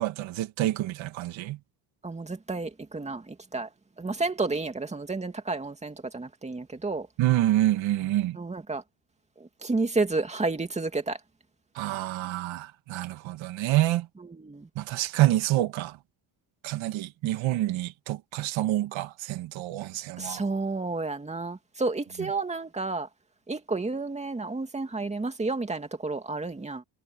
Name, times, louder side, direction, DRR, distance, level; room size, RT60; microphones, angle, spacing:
voice 1, 0.0-1.6 7.2-8.4 11.8-14.1 14.8-15.9 16.6-20.4, right 15 dB, 65° right, 2.3 m, -27 dB
voice 2, 2.0-3.7 4.0-7.1 8.3-8.8 9.4-11.2 14.2-14.7 20.2-23.1 23.5-26.8, right 3 dB, 15° right, 2.4 m, -31 dB
cardioid pair, 135°, 49 cm